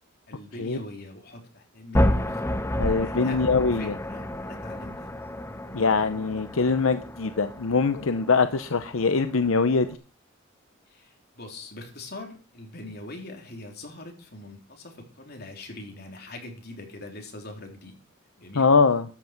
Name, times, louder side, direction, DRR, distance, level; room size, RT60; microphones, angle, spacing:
voice 1, 0.3-2.4 2.8-5.1 10.9-18.0 18.4-18.7, left 2 dB, 50° left, 2 dB, 3.6 m, -42 dB
sound 1, 1.9-9.9, left 1 dB, 10° left, 0.8 m, -30 dB
voice 2, 2.8-3.9 5.7-9.9 18.6-19.0, left 4 dB, 80° left, 11 dB, 0.8 m, -23 dB
13.0 x 7.9 x 5.9 m, 0.37 s
head